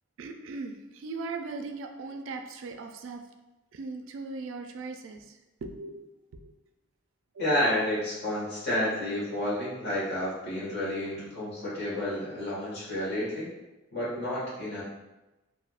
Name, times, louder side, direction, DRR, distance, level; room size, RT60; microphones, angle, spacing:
voice 1, 0.2-3.3 3.7-6.1 6.4-6.5 7.3-7.5 14.1-14.3, right 3 dB, 70° right, 5 dB, 0.3 m, -39 dB
voice 2, 7.4-13.5 13.9-14.8, left 1 dB, 55° left, -8 dB, 1.4 m, -30 dB
3.4 x 2.6 x 2.3 m, 1.0 s
head